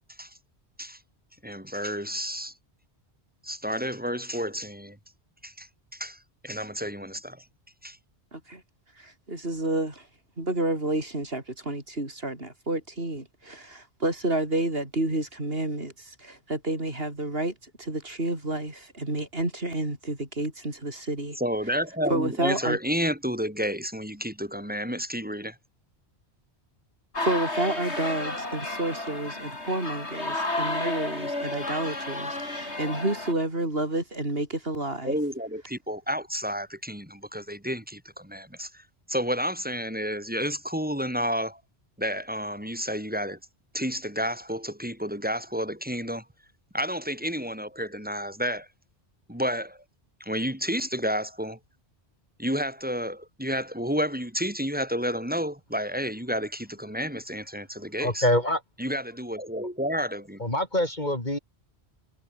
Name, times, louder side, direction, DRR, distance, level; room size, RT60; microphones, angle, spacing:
voice 1, 1.4-2.5 3.4-5.0 5.4-7.4 7.8-8.0 21.4-25.6 35.0-41.6 42.0-43.4 43.7-46.3 46.7-48.7 49.3-49.8 50.2-51.6 52.4-58.3 58.8-60.4, equal, 10° right, 4.3 m, -31 dB
voice 2, 8.3-8.6 9.0-10.1 10.4-21.4 22.1-22.8 27.2-32.2 32.8-35.1, right 1 dB, 60° right, 6.4 m, -30 dB
sound 1, 27.1-33.3, left 2 dB, 75° left, 5.4 m, -32 dB
voice 3, 58.0-58.6 60.4-61.4, left 1 dB, 40° left, 5.2 m, -25 dB
omnidirectional pair, 1.1 m